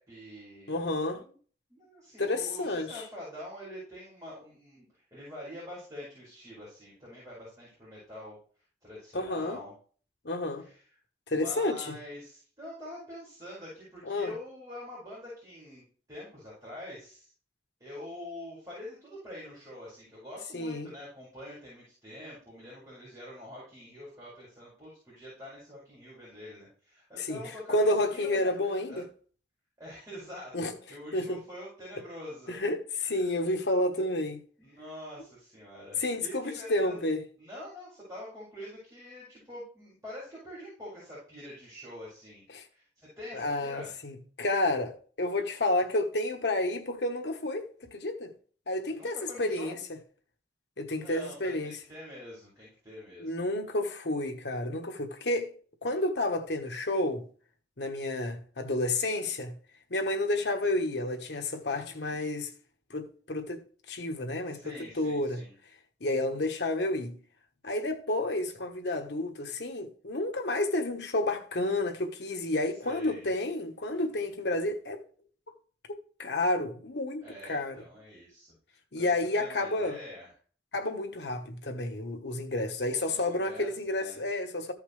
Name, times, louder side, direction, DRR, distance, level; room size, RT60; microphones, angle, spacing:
voice 1, 0.0-1.3 1.7-8.4 8.8-9.7 10.5-11.0 11.3-17.3 17.8-28.5 28.9-29.0 29.8-32.6 33.0-33.4 34.6-37.1 37.4-44.0 48.9-49.8 50.9-53.4 61.6-62.2 64.4-65.5 66.1-66.5 72.8-73.3 77.2-80.3 82.8-84.2, left 1 dB, 20° right, 5.3 m, -46 dB
voice 2, 0.7-1.2 2.2-2.9 9.1-9.6 10.2-10.6 11.3-11.9 14.1-14.3 20.5-20.9 27.2-27.4 27.7-29.0 30.5-30.7 31.1-31.4 32.5-34.4 36.0-37.2 42.5-42.6 43.3-48.3 48.7-49.8 50.8-51.8 53.2-55.5 55.8-57.2 57.8-59.5 59.9-62.5 62.9-63.6 63.9-65.4 66.0-67.2 67.6-75.0 75.9-77.8 78.9-80.0 80.7-84.7, left 2 dB, 75° left, 1.3 m, -30 dB
14.5 x 5.6 x 3.3 m
head